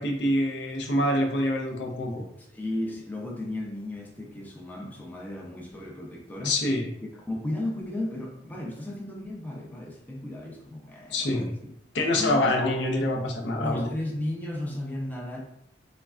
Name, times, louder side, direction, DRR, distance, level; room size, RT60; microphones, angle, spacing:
voice 1, 0.0-2.3 6.4-6.9 11.1-11.5 11.9-13.9, left 1 dB, 90° left, 0.5 m, -26 dB
voice 2, 2.4-6.6 7.1-11.7 12.2-12.6 13.6-15.4, left 1 dB, 10° left, 0.4 m, -35 dB
3.4 x 2.1 x 2.3 m
head